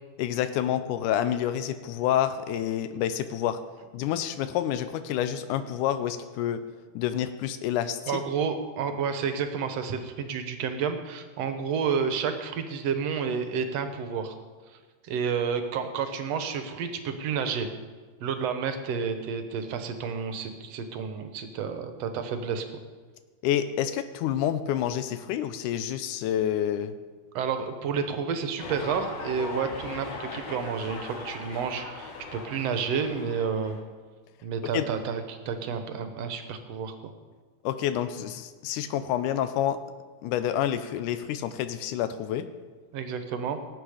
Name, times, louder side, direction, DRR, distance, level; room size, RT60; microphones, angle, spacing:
voice 1, 0.2-3.6 3.9-6.6 7.0-8.2 23.4-26.9 34.7-34.9 37.6-39.8 40.2-42.5, left 10 dB, 85° left, 11 dB, 2.2 m, -28 dB
voice 2, 8.1-14.4 15.0-17.7 18.2-22.7 27.3-33.8 34.4-37.1 42.9-43.6, right 6 dB, 65° right, 8 dB, 1.9 m, -30 dB
sound 1, 28.6-33.8, left 3 dB, 60° left, 2.7 m, -39 dB
18.5 x 8.9 x 5.0 m, 1.4 s
omnidirectional pair, 3.5 m